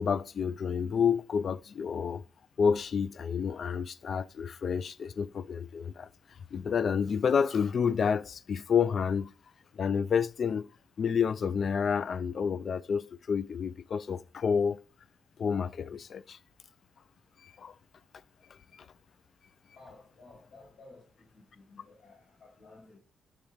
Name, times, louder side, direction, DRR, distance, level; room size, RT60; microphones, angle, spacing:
voice 1, 0.0-2.2 2.6-6.1 6.5-9.3 9.7-10.7 11.0-14.8 15.4-16.4 17.4-17.7, left 6 dB, 55° left, 0.3 m, -29 dB
voice 2, 19.8-23.0, left 3 dB, 80° left, 2.1 m, -55 dB
7.1 x 3.0 x 5.1 m
cardioid pair, 90°, 0 cm